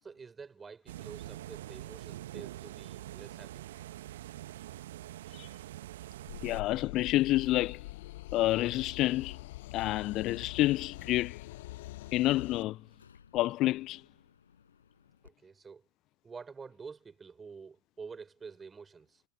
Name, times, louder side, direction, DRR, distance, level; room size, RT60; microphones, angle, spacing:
voice 1, 0.0-3.6 15.2-15.8 16.2-19.2, right 5 dB, 15° right, 5.2 m, -48 dB
sound 1, 0.9-6.6, right 14 dB, 55° right, 1.3 m, -44 dB
sound 2, 6.3-12.6, left 18 dB, 50° left, 0.9 m, -44 dB
voice 2, 6.4-7.8 8.3-9.4 9.7-11.4 12.1-12.8 13.3-14.0, left 16 dB, 35° left, 0.6 m, -28 dB
Subway metro underground, 8.7-15.3, left 7 dB, 70° left, 7.8 m, -59 dB
figure-of-eight pair, 90°, 0 cm